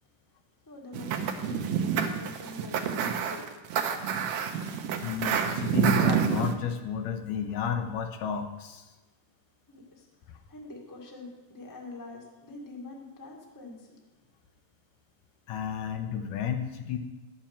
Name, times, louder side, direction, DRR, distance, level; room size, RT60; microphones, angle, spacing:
voice 1, 0.7-3.5 9.7-14.0, left 2 dB, 10° left, -1 dB, 0.8 m, -45 dB
sound 1, 0.9-6.5, right 7 dB, 70° right, 1.7 m, -28 dB
voice 2, 5.0-8.9 15.5-17.0, left 7 dB, 80° left, 5 dB, 2.3 m, -32 dB
10.5 x 7.3 x 7.2 m, 1.1 s
omnidirectional pair, 3.7 m